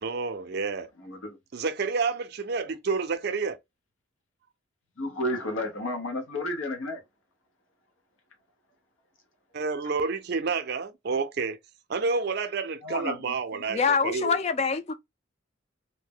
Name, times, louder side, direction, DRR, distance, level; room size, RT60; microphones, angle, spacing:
voice 1, 0.0-0.9 1.5-3.6 9.5-11.6 11.9-14.3, right 4 dB, 55° right, 0.4 m, -29 dB
voice 2, 1.0-1.4 5.0-7.0 12.8-13.2, left 1 dB, 85° left, 0.9 m, -31 dB
voice 3, 13.7-14.9, left 5 dB, 35° left, 0.4 m, -25 dB
2.7 x 2.1 x 3.5 m
head